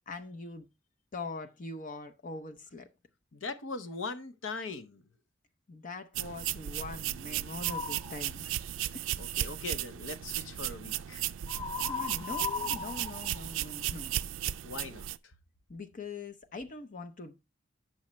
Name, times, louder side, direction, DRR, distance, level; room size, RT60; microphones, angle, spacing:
voice 1, 0.1-0.7 1.1-2.9 5.7-8.6 8.9-9.1 11.8-14.1 15.7-17.4, left 3 dB, 45° left, 0.6 m, -42 dB
voice 2, 3.3-5.0 9.2-11.2 14.6-15.1, left 3 dB, 75° left, 0.8 m, -40 dB
sound 1, 6.1-15.2, right 13 dB, 75° right, 0.3 m, -35 dB
sound 2, 7.6-8.2 11.5-14.2, left 5 dB, 20° left, 0.9 m, -38 dB
8.6 x 6.3 x 3.0 m
head